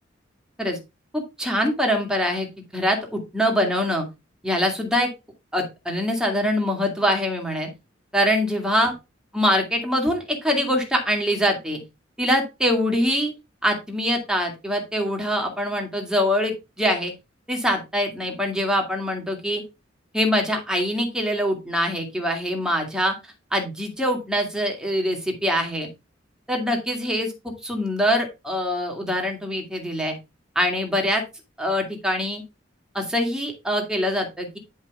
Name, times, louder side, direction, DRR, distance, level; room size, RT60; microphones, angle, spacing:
voice 1, 1.1-2.5 2.7-4.1 4.4-5.1 5.5-7.7 8.1-8.9 9.3-11.8 12.2-13.3 13.6-17.1 17.5-19.6 20.1-23.1 23.5-25.9 26.5-30.2 30.6-31.2 31.6-32.4 32.9-34.6, equal, 5° right, 1 dB, 2.0 m, -24 dB
10.0 x 5.2 x 3.5 m, 0.25 s
head